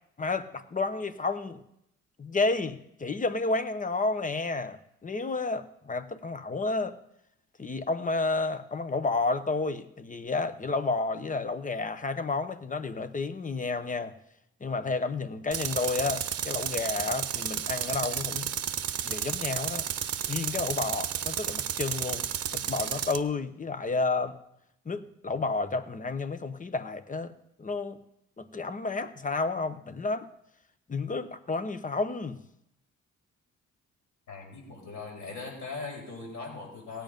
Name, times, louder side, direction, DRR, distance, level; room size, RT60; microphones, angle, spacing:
voice 1, 0.2-1.6 2.2-7.0 7.6-14.1 14.6-18.5 19.0-19.9 20.3-22.3 22.5-24.4 24.9-27.3 27.6-28.0 28.4-30.3 30.9-32.4, left 3 dB, 25° left, 0.9 m, -31 dB
Tools, 15.5-23.2, right 9 dB, 55° right, 0.8 m, -32 dB
voice 2, 34.3-37.0, left 4 dB, 70° left, 6.1 m, -40 dB
16.5 x 9.1 x 5.3 m
cardioid pair, 90°, 30 cm